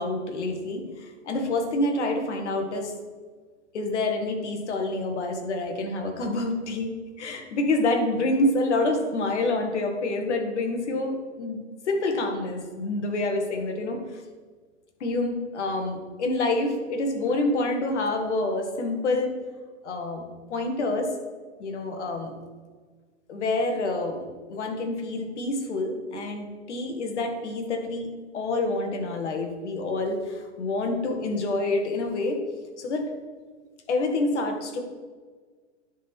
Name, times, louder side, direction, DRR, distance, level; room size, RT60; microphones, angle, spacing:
voice 1, 0.0-2.9 3.7-11.6 11.9-14.2 15.0-19.4 19.8-21.1 21.6-22.4 23.3-32.4 32.8-33.1 33.9-34.8, left 2 dB, 70° left, 4 dB, 1.8 m, -27 dB
10.0 x 4.2 x 4.5 m, 1.5 s
hypercardioid pair, 125°, 36 cm